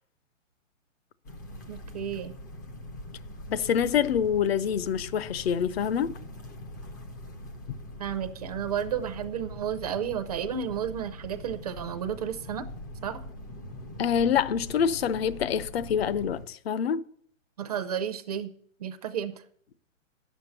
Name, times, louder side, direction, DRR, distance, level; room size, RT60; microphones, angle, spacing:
sound 1, 1.2-16.5, left 1 dB, 15° left, 0.4 m, -42 dB
voice 1, 1.7-2.3 8.0-12.6 13.0-13.2 17.6-18.5 18.8-19.3, right 8 dB, 30° right, 0.5 m, -32 dB
voice 2, 3.5-6.1 7.7-7.8 14.0-17.0, left 8 dB, 50° left, 0.7 m, -26 dB
9.8 x 7.3 x 7.8 m
hypercardioid pair, 155°, 39 cm